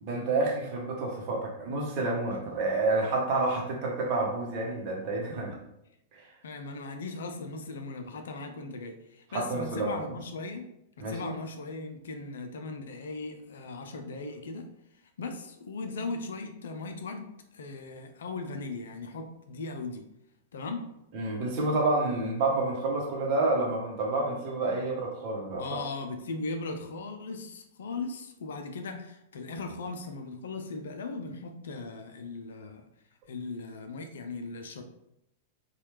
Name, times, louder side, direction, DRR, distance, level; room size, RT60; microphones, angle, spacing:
voice 1, 0.0-5.6 6.1-6.2 9.3-10.0 11.0-11.2 21.1-25.8, right 2 dB, 40° right, -1 dB, 0.9 m, -29 dB
voice 2, 6.4-10.7 11.0-14.7 15.2-20.0 20.5-20.9 25.6-32.8 33.3-34.8, left 3 dB, 60° left, 5 dB, 0.4 m, -38 dB
4.2 x 2.3 x 3.1 m, 0.82 s
figure-of-eight pair, 95°, 0 cm